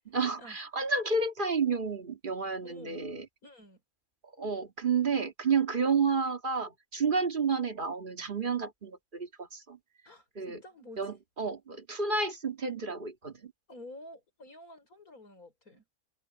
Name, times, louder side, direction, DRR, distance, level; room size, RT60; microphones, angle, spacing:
voice 1, 0.1-3.3 4.4-9.8 10.4-10.6 11.0-13.5, right 5 dB, 35° right, 2.1 m, -30 dB
voice 2, 2.6-3.0 3.4-3.8 10.0-11.1 13.7-15.8, left 1 dB, 80° left, 6.0 m, -50 dB
omnidirectional pair, 1.5 m